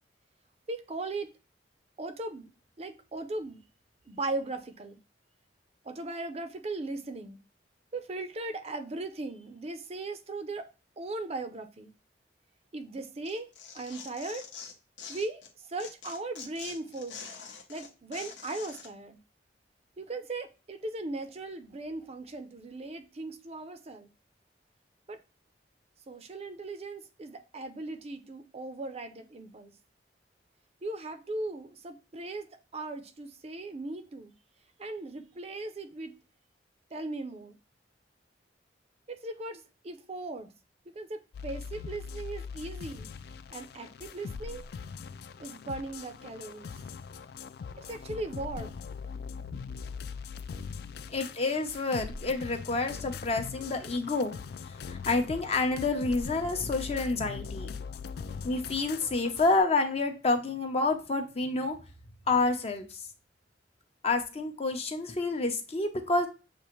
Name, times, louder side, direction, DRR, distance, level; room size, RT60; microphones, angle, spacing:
voice 1, 0.7-1.3 2.0-2.5 2.8-3.6 4.1-5.0 5.8-7.4 7.9-10.7 11.0-11.9 12.7-13.5 13.7-14.5 15.1-17.3 17.7-19.2 20.0-24.1 25.1-25.2 26.1-29.7 30.8-34.3 34.8-36.1 36.9-37.6 39.1-40.5 40.9-43.1 43.5-44.6 45.4-46.7 47.8-48.7, right 2 dB, 35° right, 0.5 m, -38 dB
Tearing, 13.2-15.5 15.8-18.9, left 6 dB, 85° left, 0.9 m, -45 dB
sound 1, 41.3-59.6, left 5 dB, 60° left, 0.3 m, -41 dB
voice 2, 51.1-54.3 54.7-57.7 58.4-61.8 62.3-63.1 64.0-66.3, left 3 dB, 35° left, 0.7 m, -29 dB
6.8 x 2.5 x 3.0 m
head